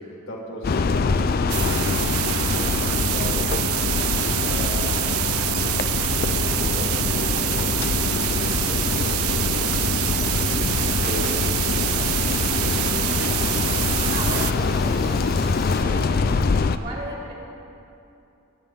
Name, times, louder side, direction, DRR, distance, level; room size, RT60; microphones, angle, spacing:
voice 1, 0.0-1.9 2.3-5.0 5.5-5.8 6.2-9.8 10.2-10.5 11.0-12.2, equal, 60° left, -2 dB, 1.9 m, -37 dB
sound 1, 0.6-16.8, left 4 dB, 45° left, 0.4 m, -24 dB
sound 2, 1.5-14.5, right 15 dB, 90° right, 0.4 m, -26 dB
Water tap faucet / Liquid, 8.0-15.8, equal, ahead, 1.7 m, -42 dB
voice 2, 14.1-15.2 15.8-16.4 16.8-17.3, right 1 dB, 45° right, -4 dB, 2.8 m, -35 dB
21.5 x 8.7 x 3.7 m, 2.7 s
head